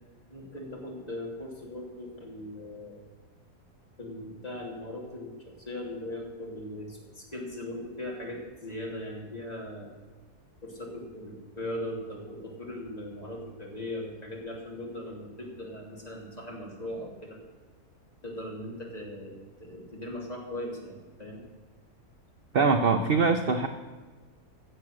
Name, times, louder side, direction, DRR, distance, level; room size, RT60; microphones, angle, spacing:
voice 1, 0.3-3.0 4.0-9.9 10.6-17.4 18.2-21.5, left 1 dB, 25° left, -2 dB, 2.9 m, -39 dB
voice 2, 22.5-23.7, right 4 dB, 50° right, 7 dB, 0.8 m, -23 dB
16.0 x 7.4 x 6.5 m, 1.4 s
omnidirectional pair, 1.7 m